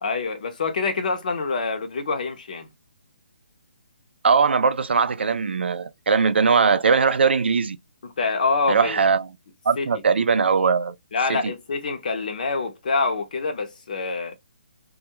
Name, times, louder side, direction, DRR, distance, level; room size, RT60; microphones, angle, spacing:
voice 1, 0.0-2.7 8.2-9.0 9.8-9.9 11.1-14.3, left 4 dB, 50° left, 0.7 m, -26 dB
voice 2, 4.2-7.8 8.7-9.3 9.7-10.9 11.3-11.5, right 5 dB, 90° right, 0.3 m, -20 dB
2.3 x 2.1 x 2.9 m
hypercardioid pair, 170°, 6 cm